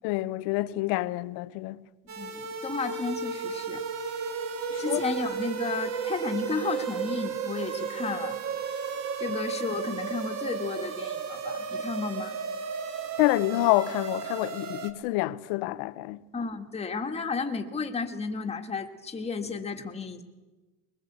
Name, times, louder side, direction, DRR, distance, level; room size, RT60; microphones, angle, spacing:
voice 1, 0.0-1.8 4.7-5.0 13.2-16.2, left 18 dB, 75° left, 1.0 m, -27 dB
sound 1, 2.1-14.9, right 6 dB, 45° right, 2.3 m, -33 dB
voice 2, 2.2-3.8 4.8-8.4 9.2-12.4 16.3-20.2, left 4 dB, 15° left, 1.8 m, -33 dB
22.0 x 20.5 x 8.2 m
cardioid pair, 145°, 37 cm